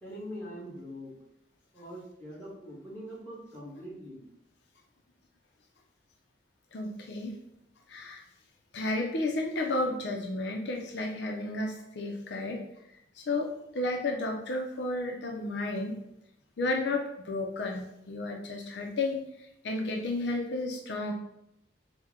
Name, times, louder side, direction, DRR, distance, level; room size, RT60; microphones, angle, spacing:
voice 1, 0.0-1.1 1.7-4.2, equal, 10° left, -8 dB, 1.3 m, -43 dB
voice 2, 6.7-7.3 7.9-8.2 8.7-12.6 13.1-16.0 16.6-21.1, left 2 dB, 75° left, 2 dB, 0.5 m, -32 dB
4.4 x 2.1 x 3.6 m, 0.81 s
head